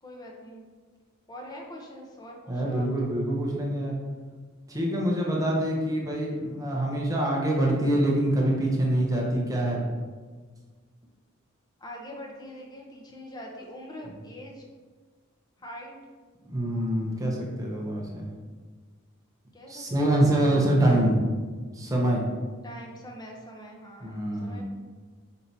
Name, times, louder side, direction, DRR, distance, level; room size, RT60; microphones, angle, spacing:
voice 1, 0.0-0.6 1.3-3.1 11.8-14.6 15.6-16.0 19.5-20.3 22.6-24.6, equal, 20° left, -1 dB, 0.7 m, -43 dB
voice 2, 2.5-4.0 4.7-9.9 16.5-18.2 19.7-21.2 21.7-22.3 24.0-24.6, right 1 dB, 15° right, -2 dB, 0.7 m, -25 dB
4.6 x 2.8 x 4.0 m, 1.5 s
head